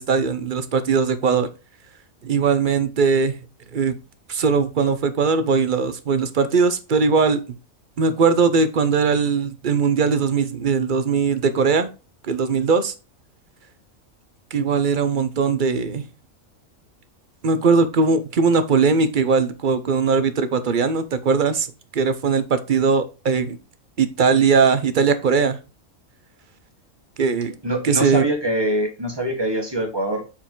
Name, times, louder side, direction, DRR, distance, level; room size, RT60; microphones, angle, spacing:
voice 1, 0.0-1.5 2.2-3.3 3.7-3.9 4.3-7.4 8.0-11.9 12.2-12.9 14.5-16.0 17.4-21.7 21.9-23.6 24.0-25.6 27.2-27.5 27.8-28.2, right 5 dB, 45° right, 11 dB, 0.7 m, -20 dB
voice 2, 27.6-30.2, right 1 dB, 20° right, 2 dB, 1.6 m, -24 dB
7.2 x 4.5 x 3.8 m, 0.31 s
omnidirectional pair, 1.4 m